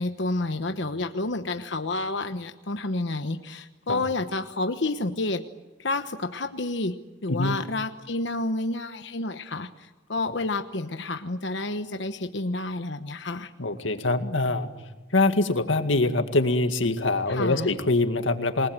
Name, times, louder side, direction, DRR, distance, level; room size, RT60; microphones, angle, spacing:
voice 1, 0.0-5.5 5.8-7.0 7.2-13.5 17.3-17.7, left 2 dB, 70° left, 7 dB, 1.1 m, -30 dB
voice 2, 13.6-14.7 15.1-18.7, left 2 dB, 85° left, 8 dB, 2.1 m, -24 dB
28.5 x 19.5 x 9.1 m, 1.3 s
head